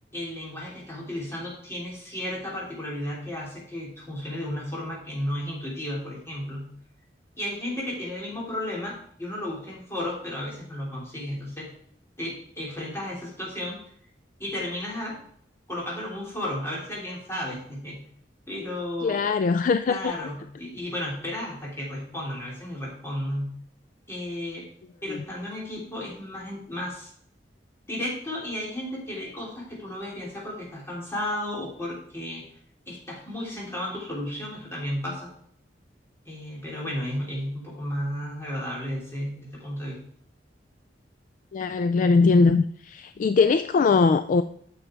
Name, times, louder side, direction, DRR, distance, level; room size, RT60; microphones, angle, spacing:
voice 1, 0.1-6.7 7.4-11.7 12.2-13.8 14.4-15.2 15.7-18.0 18.5-19.2 19.9-23.6 24.1-24.7 25.0-27.1 27.9-32.4 32.9-35.3 36.3-40.0, left 1 dB, 15° left, 3.6 m, -33 dB
voice 2, 19.0-20.1 41.5-44.4, left 4 dB, 45° left, 0.3 m, -21 dB
9.0 x 6.5 x 4.6 m
head